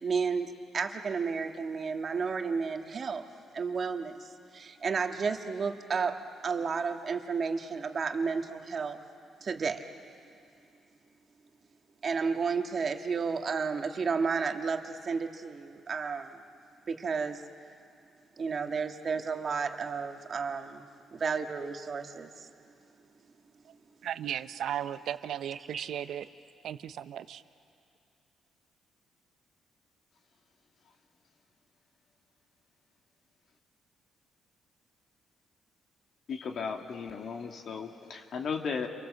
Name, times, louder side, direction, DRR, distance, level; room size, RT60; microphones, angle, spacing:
voice 1, 0.0-3.2 3.5-9.0 9.4-9.8 12.0-16.4 16.9-17.4 18.4-22.5 25.7-25.8, right 5 dB, 45° right, 5 dB, 1.7 m, -32 dB
voice 2, 24.0-26.3 26.6-27.4, right 10 dB, 75° right, 13 dB, 0.8 m, -36 dB
voice 3, 36.3-38.9, left 5 dB, 60° left, 3 dB, 2.2 m, -35 dB
29.5 x 23.5 x 7.7 m, 2.5 s
cardioid pair, 90°, 0 cm